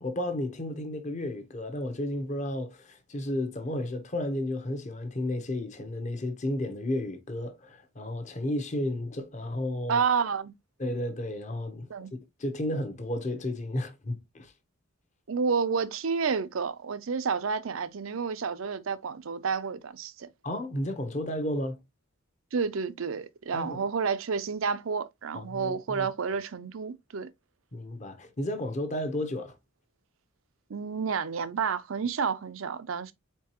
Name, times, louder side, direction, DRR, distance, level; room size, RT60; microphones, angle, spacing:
voice 1, 0.0-10.0 10.8-11.9 12.4-14.5 20.4-21.8 23.5-23.8 25.3-26.1 27.7-29.5, left 1 dB, 35° left, 0.9 m, -32 dB
voice 2, 9.9-10.5 11.9-12.1 15.3-20.3 22.5-27.3 30.7-33.1, right 5 dB, 85° right, 0.6 m, -30 dB
4.4 x 3.9 x 2.9 m
head